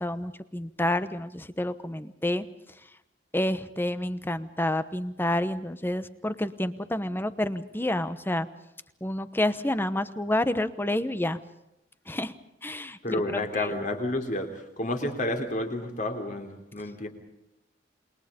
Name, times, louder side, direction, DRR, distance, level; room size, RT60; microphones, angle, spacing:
voice 1, 0.0-2.4 3.3-8.5 9.0-11.4 12.1-12.3 12.6-13.0 13.3-13.7, left 1 dB, 10° left, 13 dB, 1.0 m, -29 dB
voice 2, 13.0-17.1, left 1 dB, 45° left, 5 dB, 3.5 m, -30 dB
28.0 x 22.0 x 5.3 m, 0.85 s
head